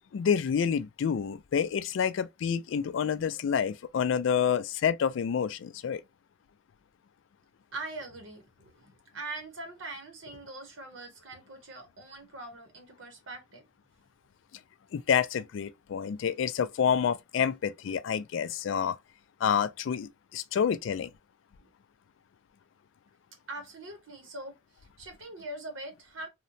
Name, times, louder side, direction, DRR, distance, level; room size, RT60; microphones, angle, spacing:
voice 1, 0.1-6.0 14.9-19.0 19.4-21.1, left 7 dB, 65° left, 0.3 m, -28 dB
voice 2, 7.7-13.6 21.6-21.7 23.5-26.3, right 2 dB, 70° right, 0.8 m, -42 dB
2.8 x 2.1 x 2.5 m
head